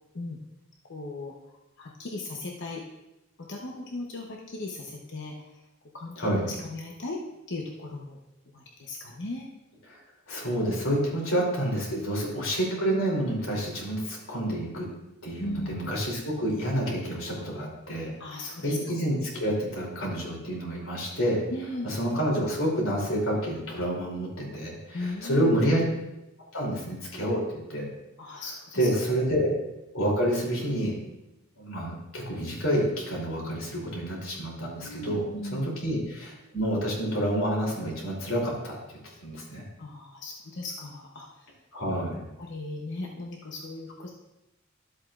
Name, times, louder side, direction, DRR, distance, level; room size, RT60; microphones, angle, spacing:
voice 1, 0.9-2.8 3.4-5.6 5.9-7.2 7.5-8.2 8.5-9.5 10.9-11.3 11.9-12.4 15.4-15.9 18.2-18.8 21.5-21.9 24.9-25.6 28.2-28.9 34.8-35.6 39.8-41.5 42.4-44.1, left 2 dB, 60° left, -1 dB, 0.9 m, -37 dB
voice 2, 6.2-6.5 9.9-10.0 10.3-14.9 15.2-18.1 18.6-21.4 21.8-25.8 26.5-27.4 27.7-27.9 28.3-28.4 28.7-29.6 29.9-31.0 31.6-35.2 35.5-38.8 39.2-39.6 41.7-42.3, equal, 80° left, -3 dB, 3.1 m, -28 dB
12.5 x 7.8 x 2.5 m, 0.96 s
head